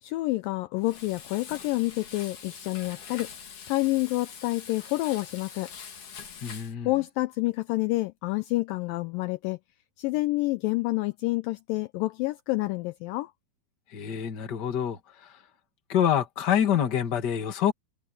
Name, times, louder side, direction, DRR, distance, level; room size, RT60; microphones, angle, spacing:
voice 1, 0.0-3.3 3.7-5.7 6.9-9.6 10.0-13.3, left 20 dB, 80° left, 2.1 m, -28 dB
Frying (food), 0.8-6.7, left 7 dB, 60° left, 4.2 m, -44 dB
voice 2, 6.4-6.9 13.9-15.3 15.9-17.7, left 9 dB, 35° left, 1.9 m, -26 dB
omnidirectional pair, 4.3 m